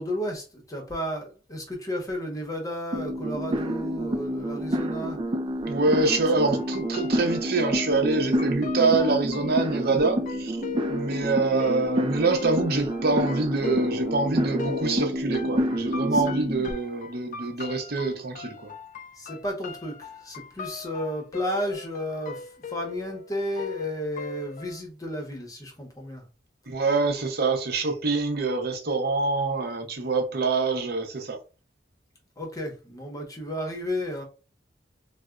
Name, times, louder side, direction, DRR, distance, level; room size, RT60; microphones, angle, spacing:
voice 1, 0.0-5.2 16.1-16.3 19.1-26.3 32.4-34.2, equal, 20° left, 0.8 m, -33 dB
sound 1, 2.9-16.7, equal, 30° right, 0.4 m, -28 dB
voice 2, 5.7-10.6 10.9-18.7 26.7-31.4, right 3 dB, 55° right, 0.7 m, -25 dB
sound 2, 6.5-24.8, left 6 dB, 45° left, 0.3 m, -39 dB
4.0 x 2.1 x 2.4 m
head